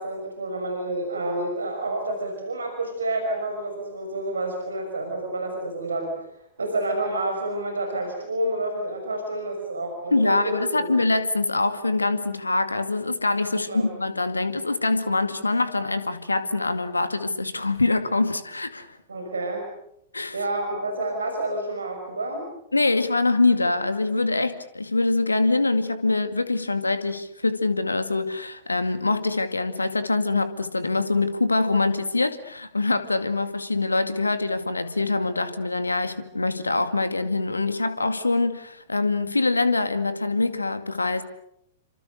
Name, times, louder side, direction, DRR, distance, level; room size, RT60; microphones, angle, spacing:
voice 1, 0.0-6.1 6.6-10.9 13.7-13.9 19.1-19.7 20.3-22.5, right 1 dB, 75° right, 5.9 m, -29 dB
voice 2, 10.1-19.0 20.1-20.4 22.7-41.2, left 3 dB, 80° left, 2.2 m, -24 dB
29.5 x 26.0 x 6.7 m
figure-of-eight pair, 105°, 0 cm